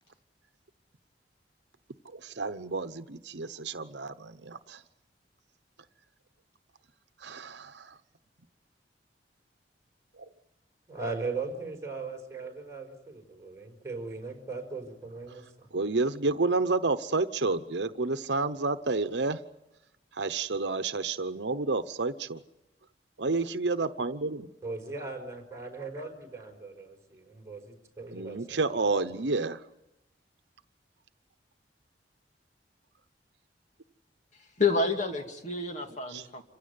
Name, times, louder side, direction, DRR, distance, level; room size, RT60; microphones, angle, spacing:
voice 1, 2.1-4.8 7.2-7.9 10.2-10.3 15.7-19.4 20.1-22.4 23.2-24.5 28.1-29.6 36.1-36.2, right 3 dB, 75° right, 11 dB, 0.9 m, -30 dB
voice 2, 10.9-15.7 24.6-29.1, right 3 dB, 15° right, 1 dB, 5.3 m, -39 dB
voice 3, 34.6-36.4, left 3 dB, 45° left, 4 dB, 2.4 m, -28 dB
27.5 x 16.5 x 9.5 m, 0.94 s
head